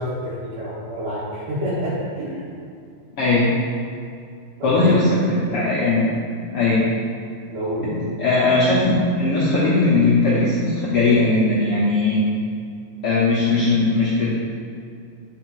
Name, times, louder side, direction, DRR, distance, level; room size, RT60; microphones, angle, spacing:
voice 1, 0.0-2.5 4.6-4.9 7.5-8.1, equal, 70° right, -10 dB, 2.8 m, -28 dB
voice 2, 3.2-3.5 4.6-6.9 7.9-12.3 13.0-14.4, left 2 dB, 70° left, -7 dB, 1.3 m, -19 dB
9.2 x 4.8 x 4.6 m, 2.3 s
omnidirectional pair, 3.9 m